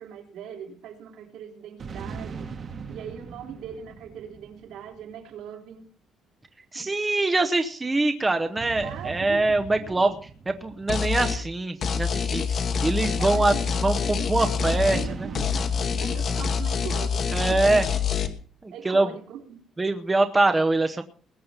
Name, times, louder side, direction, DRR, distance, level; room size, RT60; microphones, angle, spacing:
voice 1, 0.0-2.5 2.9-5.9 6.7-6.9 8.8-10.1 13.2-17.8 18.7-19.6, right 8 dB, 75° right, 2 dB, 3.8 m, -41 dB
sound 1, 1.8-5.4 8.6-12.2 14.6-18.0, right 5 dB, 35° right, 1.5 m, -40 dB
voice 2, 6.7-10.2 10.5-13.5 13.8-15.3 17.3-17.9 18.6-19.1 19.8-21.0, right 2 dB, 15° right, 6 dB, 0.9 m, -24 dB
sound 2, 10.9-11.4 11.8-15.1 15.3-18.3, left 6 dB, 40° left, 1.4 m, -26 dB
20.5 x 8.5 x 5.9 m, 0.43 s
cardioid pair, 165°, 0 cm